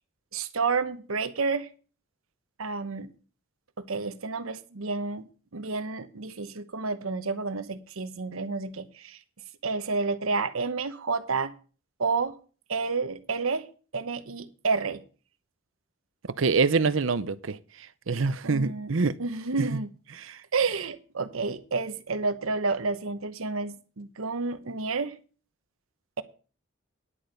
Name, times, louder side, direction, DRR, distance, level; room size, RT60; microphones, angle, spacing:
voice 1, 0.3-1.7 2.6-3.1 3.9-5.3 5.5-9.2 9.6-11.5 12.0-12.3 12.7-13.6 13.9-15.0 18.4-18.9 19.2-19.9 20.5-25.1, right 4 dB, 90° right, 1.0 m, -30 dB
voice 2, 16.4-17.6 18.1-19.1 19.6-19.8 20.2-20.4, right 4 dB, 75° right, 0.7 m, -25 dB
10.5 x 8.9 x 5.2 m
head